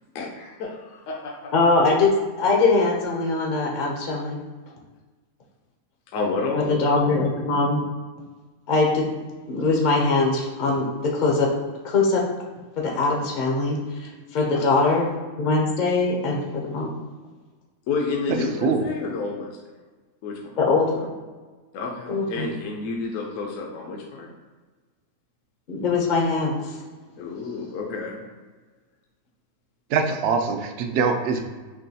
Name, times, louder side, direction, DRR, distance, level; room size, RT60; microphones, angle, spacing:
voice 1, 0.1-1.5 6.1-6.8 14.5-14.9 17.9-19.6 20.2-20.6 21.7-24.3 27.2-28.3, left 3 dB, 70° left, 0 dB, 0.9 m, -30 dB
voice 2, 1.5-2.1 2.4-4.4 6.8-7.8 8.7-9.1 9.5-11.5 11.8-12.2 12.8-15.1 15.3-16.9 20.6-21.0 22.1-22.5 25.7-26.8, left 3 dB, 50° left, -1 dB, 0.6 m, -22 dB
voice 3, 29.9-31.4, right 5 dB, 70° right, 5 dB, 0.6 m, -23 dB
6.1 x 2.3 x 2.7 m, 1.3 s
omnidirectional pair, 1.5 m